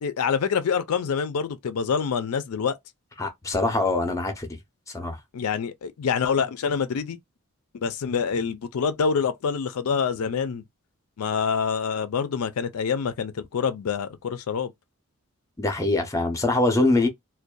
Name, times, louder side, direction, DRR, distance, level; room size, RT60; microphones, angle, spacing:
voice 1, 0.0-2.8 5.3-7.2 7.8-10.6 11.2-14.7, left 6 dB, 80° left, 0.4 m, -26 dB
voice 2, 3.2-4.5 4.9-5.2 15.6-17.1, left 2 dB, 15° left, 0.5 m, -23 dB
2.6 x 2.2 x 2.2 m
head